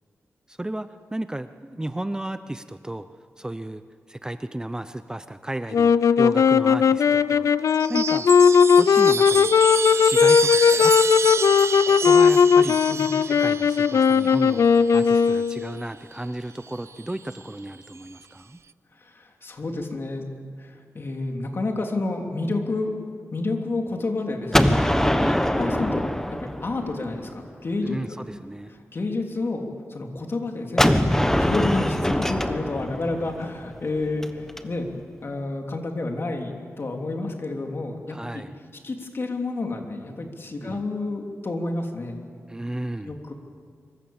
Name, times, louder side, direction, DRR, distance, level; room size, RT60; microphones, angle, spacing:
voice 1, 0.5-3.1 3.4-3.8 4.1-8.3 8.8-9.5 10.0-11.0 11.9-12.8 13.2-18.6 25.1-25.5 27.8-28.7 38.1-38.5 40.6-40.8 42.5-43.1, right 1 dB, 15° right, 10 dB, 0.7 m, -33 dB
sound 1, 5.7-15.8, left 6 dB, 85° left, 0.6 m, -18 dB
Chime, 7.7-15.5 16.8-17.4, right 5 dB, 60° right, 0.6 m, -29 dB
voice 2, 19.0-20.2 20.6-22.9 23.3-25.2 25.5-28.0 28.9-31.1 31.4-34.9 35.2-38.4 38.8-42.2 43.0-43.3, left 2 dB, 50° left, 2 dB, 3.1 m, -30 dB
Gunshot gunfire, 24.5-27.3 30.8-34.6, left 1 dB, 10° left, 1.3 m, -23 dB
26.0 x 23.5 x 7.2 m, 2.1 s
wide cardioid pair, 100°, 5 cm